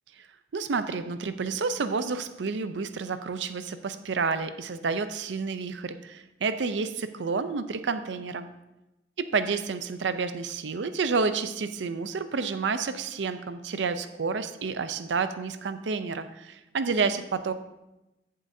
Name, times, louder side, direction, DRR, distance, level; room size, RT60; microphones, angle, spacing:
voice 1, 0.5-8.5 9.2-17.5, right 4 dB, 80° right, 11 dB, 0.5 m, -30 dB
14.5 x 7.6 x 2.7 m, 0.98 s
head